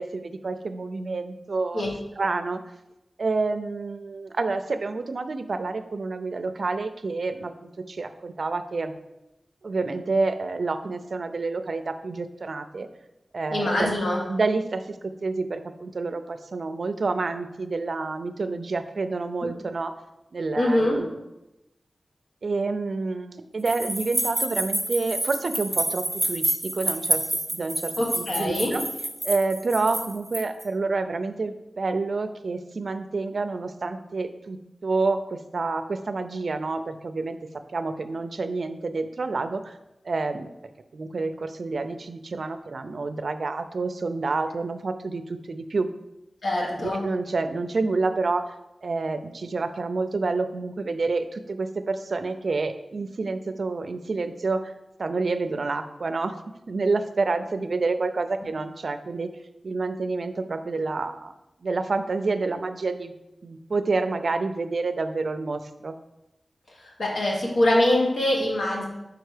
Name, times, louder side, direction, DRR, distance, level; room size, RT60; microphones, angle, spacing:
voice 1, 0.0-1.9 2.2-2.6 3.2-8.9 9.6-12.9 13.3-13.9 14.3-14.8 15.2-19.9 20.3-21.2 22.4-27.2 27.5-28.8 29.2-37.4 37.7-39.8 40.0-40.5 40.9-45.9 46.8-48.5 48.8-54.7 55.0-56.3 56.7-59.3 59.6-61.3 61.6-63.1 63.4-65.9, right 3 dB, 65° right, 9 dB, 0.4 m, -28 dB
voice 2, 13.5-14.2 20.6-21.0 28.0-28.7 46.4-47.0 67.0-68.8, left 1 dB, 85° left, -3 dB, 1.4 m, -23 dB
sound 1, 23.7-30.6, right 1 dB, 15° right, 0.9 m, -28 dB
4.8 x 4.5 x 4.9 m, 0.92 s
wide cardioid pair, 90°, 0 cm